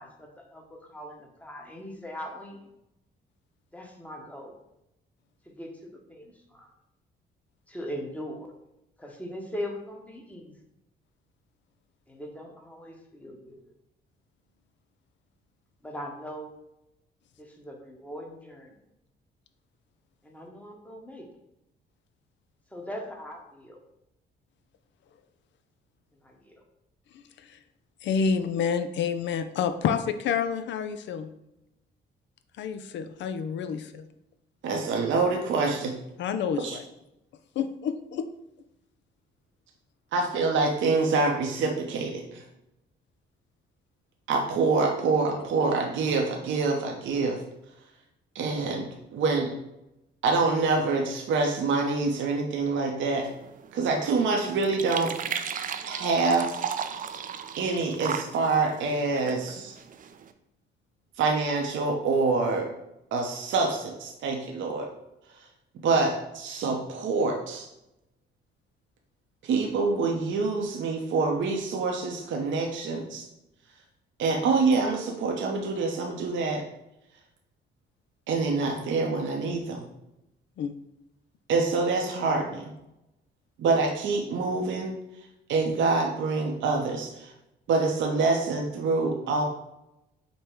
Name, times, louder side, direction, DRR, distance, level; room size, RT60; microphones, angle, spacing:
voice 1, 0.0-2.7 3.7-4.6 5.4-6.7 7.7-8.5 9.0-10.5 12.1-13.6 15.8-16.5 17.4-18.8 20.2-21.3 22.7-23.8 26.2-26.5, equal, 5° left, 1 dB, 1.0 m, -40 dB
voice 2, 28.0-31.3 32.6-34.1 36.2-36.8 37.6-38.3 80.6-80.7, left 6 dB, 65° left, 9 dB, 0.4 m, -28 dB
voice 3, 34.6-35.9 36.6-36.8 40.1-42.4 44.3-47.4 48.3-48.9 49.1-49.5 50.2-53.3 53.7-55.4 55.8-56.6 57.6-59.7 61.2-62.7 63.1-64.9 65.8-67.7 69.4-73.2 74.2-76.6 78.3-79.9 81.5-82.7 83.6-84.9 85.5-87.3 87.7-89.4, right 3 dB, 70° right, 1 dB, 0.7 m, -26 dB
sound 1, 53.1-60.3, right 7 dB, 45° right, 0.4 m, -36 dB
5.3 x 2.1 x 4.4 m, 0.86 s
cardioid pair, 90°, 20 cm